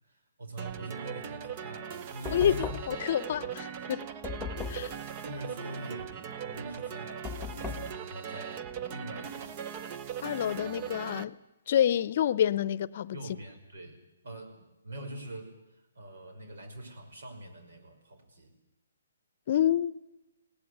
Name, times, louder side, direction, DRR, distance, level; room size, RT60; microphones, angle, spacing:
voice 1, 0.0-3.0 4.8-9.6 13.1-18.6, right 1 dB, 70° right, 5.9 m, -44 dB
sound 1, 0.6-11.2, right 8 dB, 30° right, 0.9 m, -40 dB
Knock, 2.3-3.1 4.2-5.0 7.3-8.0, left 6 dB, ahead, 1.7 m, -37 dB
voice 2, 2.9-4.1 4.7-4.9 10.2-11.4 11.7-13.2 19.5-19.9, left 10 dB, 45° left, 0.8 m, -27 dB
20.5 x 18.5 x 9.7 m
hypercardioid pair, 160°, 0 cm